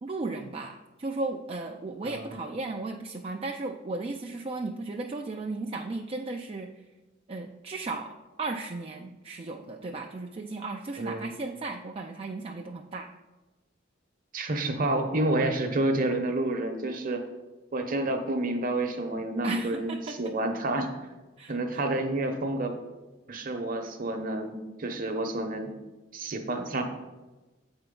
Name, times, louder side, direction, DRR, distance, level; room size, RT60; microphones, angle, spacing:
voice 1, 0.0-6.9 7.3-13.1 19.4-20.2 21.4-21.6, right 3 dB, 30° right, 2 dB, 0.4 m, -35 dB
voice 2, 2.0-2.3 11.0-11.3 14.3-17.2 17.7-21.0 21.5-22.8 23.3-25.7 26.1-26.8, right 2 dB, 45° right, 5 dB, 1.0 m, -29 dB
7.9 x 4.4 x 5.3 m, 1.2 s
head